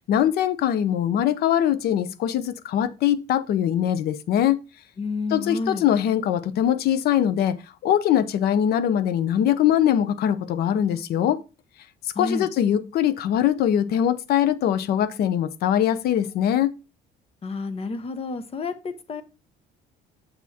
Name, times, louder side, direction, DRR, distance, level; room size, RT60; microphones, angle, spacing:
voice 1, 0.1-4.6 5.3-7.6 7.8-11.4 12.2-16.7, left 10 dB, 70° left, 0.7 m, -22 dB
voice 2, 5.0-5.9 12.1-12.5 17.4-19.2, left 3 dB, 35° left, 0.9 m, -30 dB
7.0 x 6.4 x 2.8 m
cardioid pair, 110°, 17 cm